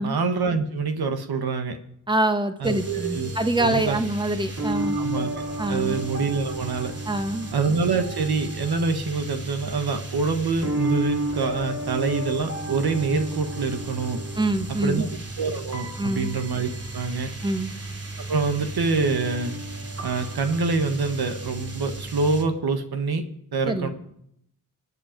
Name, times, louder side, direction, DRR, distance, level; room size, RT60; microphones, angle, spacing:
voice 1, 0.0-1.8 2.6-3.3 3.6-4.0 4.9-5.4 5.7-6.9 7.5-14.2 14.7-15.1 15.4-17.3 18.3-19.6 20.0-23.2 23.5-23.9, right 4 dB, 65° right, 6 dB, 1.6 m, -26 dB
voice 2, 2.1-5.0 5.6-6.0 7.0-7.5 14.4-15.1 16.0-16.3 17.4-17.7 23.7-23.9, right 1 dB, 10° right, 7 dB, 1.6 m, -25 dB
sound 1, 2.6-22.4, right 1 dB, 35° right, 3.0 m, -33 dB
22.5 x 8.3 x 5.2 m, 0.74 s
supercardioid pair, 45°, 40 cm